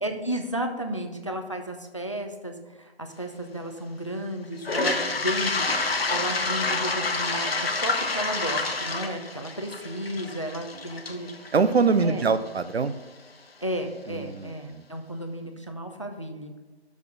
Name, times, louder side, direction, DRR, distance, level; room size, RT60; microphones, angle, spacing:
voice 1, 0.0-11.3 11.9-12.3 13.6-16.5, right 1 dB, 30° left, 5 dB, 0.5 m, -33 dB
Toilet flush, 4.6-12.5, left 3 dB, 60° left, 1.0 m, -28 dB
sound 1, 4.8-10.1, equal, ahead, 0.9 m, -43 dB
voice 2, 11.5-12.9 14.1-14.8, right 5 dB, 70° right, 12 dB, 0.6 m, -24 dB
6.5 x 5.4 x 6.3 m, 1.3 s
figure-of-eight pair, 170°, 33 cm